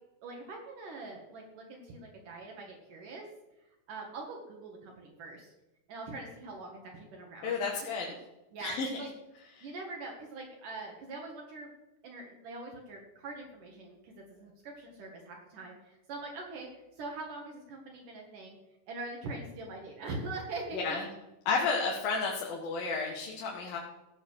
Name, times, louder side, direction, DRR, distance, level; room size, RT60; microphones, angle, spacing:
voice 1, 0.2-3.3 3.9-5.5 5.9-7.6 8.0-8.2 8.5-9.1 9.6-11.7 12.0-18.6 18.9-21.0, right 3 dB, 65° right, 0 dB, 3.2 m, -43 dB
voice 2, 7.4-8.1 8.6-8.9 9.6-9.7 20.7-21.1 21.5-23.8, left 4 dB, 80° left, -1 dB, 3.3 m, -32 dB
16.5 x 6.7 x 6.4 m, 0.99 s
omnidirectional pair, 4.0 m